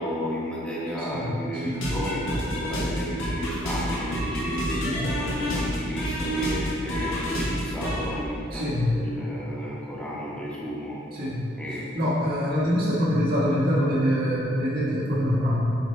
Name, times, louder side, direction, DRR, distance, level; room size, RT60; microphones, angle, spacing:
voice 1, 0.0-11.0 11.6-12.1, equal, 5° left, -7 dB, 1.2 m, -33 dB
sound 1, 1.7-8.1, equal, 75° left, 1.6 m, -29 dB
voice 2, 8.5-8.8 11.2-11.5 11.9-15.6, equal, 50° right, -8 dB, 1.4 m, -24 dB
8.3 x 5.2 x 3.3 m, 2.6 s
head